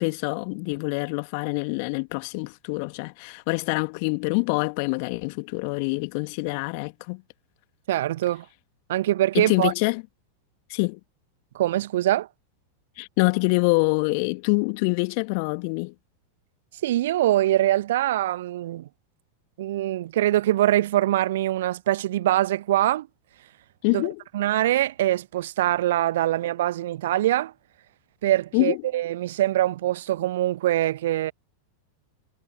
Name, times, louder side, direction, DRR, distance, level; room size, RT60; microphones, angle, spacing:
voice 1, 0.0-7.2 9.3-10.0 10.7-11.0 13.0-15.9 23.8-24.2 28.5-28.8, left 34 dB, 45° left, 2.0 m, -25 dB
voice 2, 7.9-8.4 8.9-9.7 11.5-12.3 16.8-18.9 19.6-23.1 23.9-24.1 24.3-27.5 28.2-31.3, right 14 dB, 55° right, 1.0 m, -23 dB
figure-of-eight pair, 90°, 0 cm